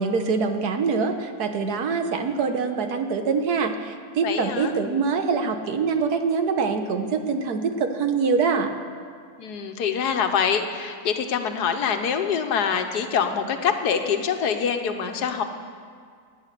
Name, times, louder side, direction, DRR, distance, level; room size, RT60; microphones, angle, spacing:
voice 1, 0.0-8.7, right 5 dB, 75° right, 6 dB, 1.6 m, -24 dB
voice 2, 4.2-4.7 9.4-15.4, left 7 dB, 90° left, 7 dB, 1.5 m, -25 dB
16.0 x 9.5 x 6.8 m, 2.1 s
omnidirectional pair, 1.7 m